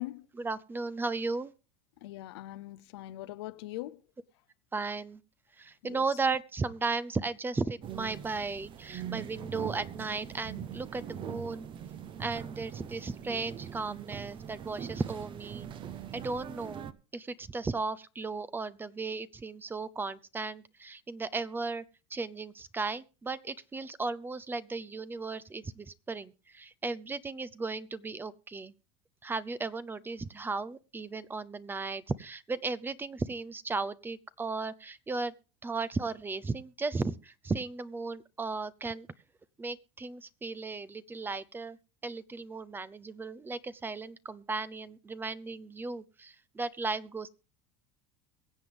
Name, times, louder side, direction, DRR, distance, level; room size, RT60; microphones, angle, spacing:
voice 1, 0.3-1.5 4.7-5.2 5.5-11.7 12.2-15.7 16.1-21.8 22.1-28.7 29.2-35.3 35.6-39.1 39.6-41.8 42.0-47.3, right 3 dB, 15° right, 0.6 m, -35 dB
voice 2, 2.0-4.0 5.8-6.0, left 16 dB, 85° left, 0.6 m, -41 dB
sound 1, 7.8-16.9, right 9 dB, 40° right, 0.9 m, -42 dB
22.5 x 7.8 x 3.5 m
supercardioid pair, 110°, 13 cm